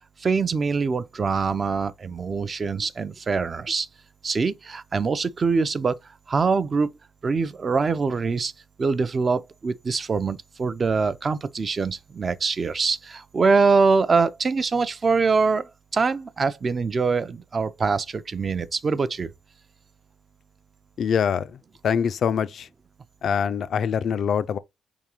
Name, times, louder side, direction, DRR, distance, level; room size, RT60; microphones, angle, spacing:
voice 1, 0.2-3.9 4.2-6.0 6.3-6.9 7.2-8.5 8.8-19.3, right 4 dB, 35° right, 0.4 m, -24 dB
voice 2, 21.0-21.6 21.8-22.7 23.2-24.6, left 7 dB, 60° left, 0.3 m, -24 dB
4.7 x 3.6 x 2.9 m
cardioid pair, 90°, 0 cm